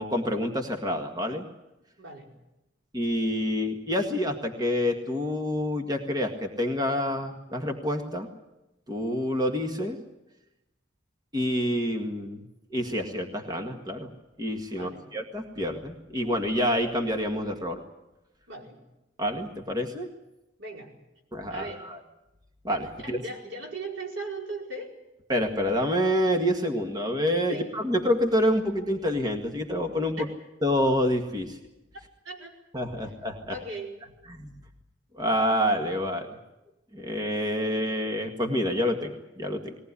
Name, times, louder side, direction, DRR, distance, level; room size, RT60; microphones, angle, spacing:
voice 1, 0.0-1.5 2.9-8.3 8.9-10.0 11.3-12.5 12.7-14.1 14.4-17.8 19.2-20.1 21.3-22.0 22.6-23.2 25.3-30.3 30.6-31.6 32.7-33.6 34.3-34.6 35.1-36.4 36.9-39.8, equal, 20° right, 4 dB, 1.9 m, -27 dB
voice 2, 2.0-2.3 14.7-15.1 18.5-18.8 20.6-20.9 21.5-21.9 23.0-25.0 27.5-27.7 30.2-30.3 32.2-32.5 33.0-33.1 33.5-34.0, right 2 dB, 90° right, 0 dB, 4.9 m, -38 dB
20.5 x 18.5 x 9.8 m, 0.97 s
head